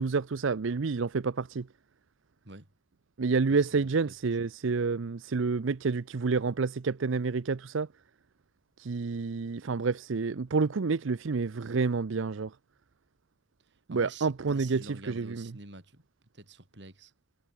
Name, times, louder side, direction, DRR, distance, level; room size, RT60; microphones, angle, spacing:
voice 1, 0.0-1.7 3.2-7.9 8.8-12.5 13.9-15.5, right 4 dB, 80° right, 0.6 m, -29 dB
voice 2, 3.5-4.4 13.9-16.0 16.3-17.1, right 2 dB, 60° right, 4.0 m, -48 dB
head